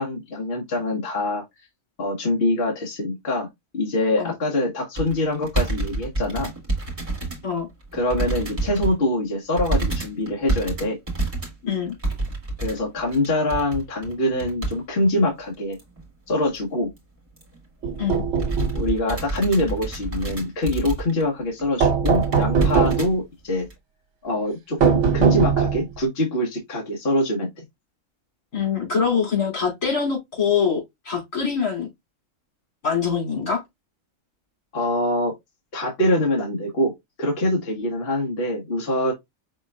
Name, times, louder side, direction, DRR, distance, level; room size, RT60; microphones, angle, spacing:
voice 1, 0.0-1.4 2.0-3.5 3.7-6.5 7.9-11.0 12.6-15.8 16.3-16.9 18.7-23.7 24.2-27.6 34.7-35.4 35.7-39.1, left 1 dB, 50° left, 1.6 m, -24 dB
sound 1, 5.0-7.4 7.8-9.0 9.6-14.8 15.1-15.2 15.7-16.1 16.5-16.6 16.8-17.0 17.4-17.6 18.0-21.3 21.6-21.7 22.0-23.1 23.7-23.8, right 2 dB, 25° right, 2.4 m, -28 dB
voice 2, 11.6-11.9 18.0-18.2 28.5-31.9 32.8-33.6, left 6 dB, 80° left, 3.4 m, -24 dB
sound 2, 17.8-18.8 21.8-23.1 24.8-26.0, right 6 dB, 65° right, 1.1 m, -20 dB
5.6 x 4.0 x 2.3 m
omnidirectional pair, 1.4 m